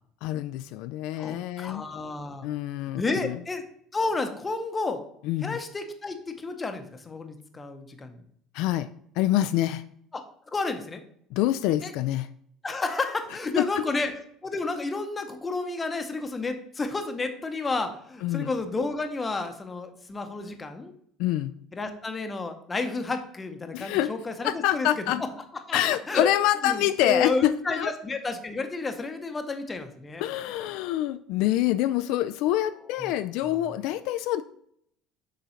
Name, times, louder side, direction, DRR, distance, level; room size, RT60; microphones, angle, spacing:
voice 1, 0.2-1.8 2.4-3.4 5.2-5.6 8.5-8.9 9.2-9.8 11.3-12.3 13.6-13.8 18.2-18.5 21.2-21.5 23.7-24.1 24.4-25.2 25.7-27.9 30.2-34.4, left 13 dB, 70° left, 12 dB, 0.3 m, -26 dB
voice 2, 1.1-2.5 2.8-3.6 3.9-5.0 5.4-8.2 10.1-10.2 10.5-11.0 11.8-11.9 12.6-14.1 14.4-20.9 21.7-25.3 25.7-25.8 26.1-26.3 26.6-30.2 33.0-33.1, left 3 dB, 15° left, 7 dB, 0.8 m, -31 dB
7.0 x 3.7 x 5.6 m, 0.67 s
cardioid pair, 150°, 0 cm